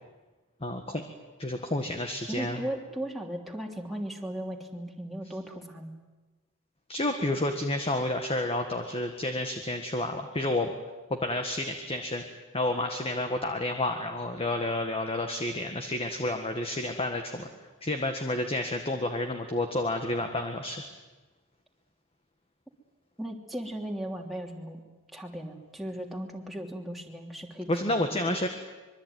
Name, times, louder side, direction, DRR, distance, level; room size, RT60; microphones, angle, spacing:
voice 1, 0.6-1.0 1.4-2.7 6.9-10.7 11.1-20.8 27.7-28.5, left 1 dB, 25° left, 5 dB, 1.7 m, -30 dB
voice 2, 2.3-5.9 23.2-24.8 25.1-28.3, right 1 dB, ahead, -1 dB, 3.1 m, -37 dB
25.5 x 23.0 x 9.5 m, 1.2 s
head